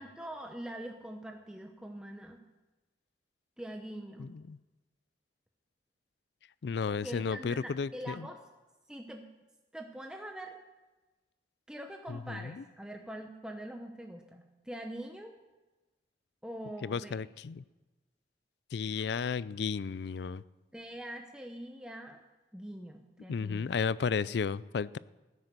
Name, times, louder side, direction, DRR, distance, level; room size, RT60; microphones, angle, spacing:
voice 1, 0.0-2.4 3.6-4.3 7.0-8.4 8.9-9.2 9.7-10.6 11.7-15.3 16.4-17.3 20.7-22.2 22.5-23.7, right 1 dB, 5° right, 0.8 m, -43 dB
voice 2, 4.2-4.6 6.6-8.3 12.1-12.6 16.8-17.6 18.7-20.4 23.3-25.0, left 5 dB, 65° left, 0.4 m, -33 dB
15.0 x 9.7 x 6.7 m
head